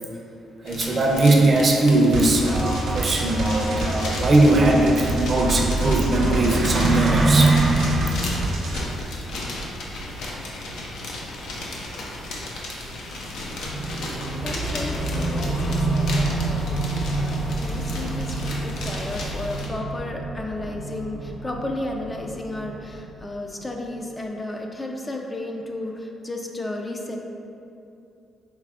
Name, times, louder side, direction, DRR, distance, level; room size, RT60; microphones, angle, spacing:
voice 1, 0.6-8.1, right 2 dB, 40° right, 0 dB, 0.5 m, -19 dB
sound 1, 0.7-19.7, left 1 dB, 80° left, 0.6 m, -34 dB
sound 2, 2.1-8.8, right 2 dB, 70° right, 0.8 m, -28 dB
sound 3, 13.6-23.7, right 2 dB, 50° left, 1.3 m, -29 dB
voice 2, 13.8-27.2, left 1 dB, 20° left, 2 dB, 0.3 m, -33 dB
4.5 x 3.3 x 2.4 m, 2.7 s
cardioid pair, 90°, 0 cm